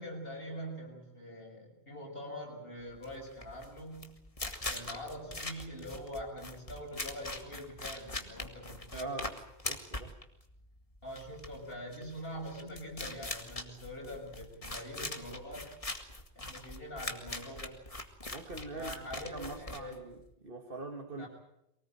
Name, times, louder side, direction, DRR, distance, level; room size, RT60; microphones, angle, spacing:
voice 1, 0.0-4.2 4.7-9.1 11.0-15.7 16.4-17.8 18.7-20.1 21.1-21.3, equal, 60° left, 0 dB, 7.2 m, -44 dB
sound 1, 2.9-20.3, left 2 dB, 35° left, 2.0 m, -42 dB
voice 2, 8.9-9.4 9.6-10.1 18.3-21.3, right 2 dB, 55° right, 4 dB, 2.3 m, -43 dB
23.5 x 18.5 x 9.0 m, 0.82 s
omnidirectional pair, 1.1 m